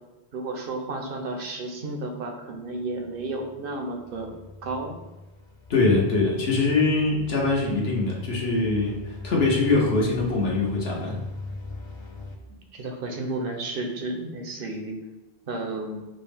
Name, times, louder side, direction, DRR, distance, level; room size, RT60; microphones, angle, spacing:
voice 1, 0.3-4.3 4.6-5.0 12.5-15.0 15.5-16.1, right 2 dB, 65° right, 3 dB, 0.8 m, -32 dB
sound 1, 2.7-12.4, left 2 dB, 40° left, 0.4 m, -40 dB
voice 2, 5.7-11.1, left 3 dB, 75° left, -2 dB, 1.0 m, -23 dB
5.0 x 2.0 x 3.3 m, 1.1 s
omnidirectional pair, 1.1 m